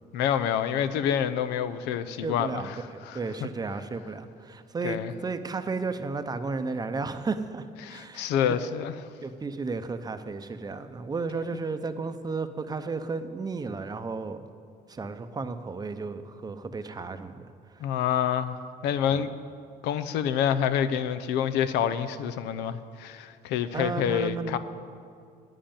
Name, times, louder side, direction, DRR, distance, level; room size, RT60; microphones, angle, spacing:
voice 1, 0.1-2.8 3.1-3.2 4.8-5.1 7.8-8.9 17.8-19.3 19.8-24.6, left 9 dB, 90° left, 11 dB, 0.6 m, -27 dB
voice 2, 2.2-8.6 9.2-14.4 14.9-17.5 19.1-19.3 23.7-24.6, right 4 dB, 25° right, 9 dB, 0.7 m, -33 dB
10.0 x 7.7 x 8.8 m, 2.3 s
cardioid pair, 110°, 17 cm